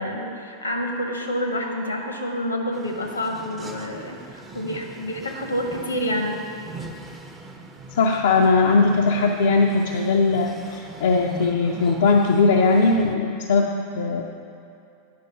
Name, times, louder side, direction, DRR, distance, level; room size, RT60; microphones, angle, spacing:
voice 1, 0.0-6.4, equal, 80° left, 3 dB, 1.0 m, -28 dB
sound 1, 2.7-13.2, right 3 dB, 15° right, 0.6 m, -40 dB
voice 2, 7.9-13.7 14.0-14.2, left 4 dB, 60° left, 1 dB, 0.4 m, -19 dB
9.3 x 5.2 x 5.3 m, 2.6 s
figure-of-eight pair, 90°, 0 cm